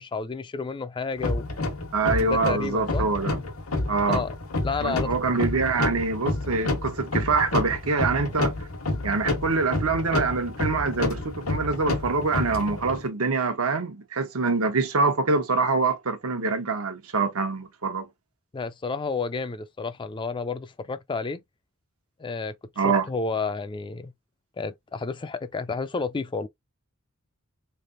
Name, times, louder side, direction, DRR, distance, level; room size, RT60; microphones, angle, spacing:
voice 1, 0.0-1.5 2.2-3.1 4.1-4.3 4.6-5.1 18.5-21.4 22.2-24.1 24.6-26.5, left 4 dB, 25° left, 0.3 m, -31 dB
sound 1, 1.2-13.0, left 2 dB, 80° left, 1.2 m, -29 dB
voice 2, 1.9-3.4 3.9-4.2 4.8-8.5 9.0-18.1 22.8-23.1, right 4 dB, 85° right, 1.0 m, -25 dB
3.6 x 3.3 x 2.5 m
head